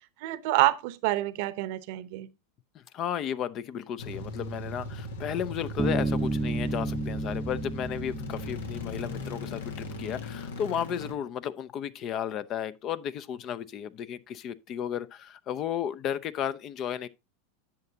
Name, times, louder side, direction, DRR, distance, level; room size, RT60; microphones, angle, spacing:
voice 1, 0.2-2.3, right 18 dB, 60° right, 0.8 m, -27 dB
voice 2, 2.7-17.1, left 9 dB, 40° left, 0.6 m, -34 dB
sound 1, 4.0-11.1, left 1 dB, 80° left, 1.5 m, -38 dB
Bass guitar, 5.8-9.5, right 2 dB, 15° right, 0.6 m, -31 dB
10.5 x 7.3 x 2.8 m
hypercardioid pair, 100°, 0 cm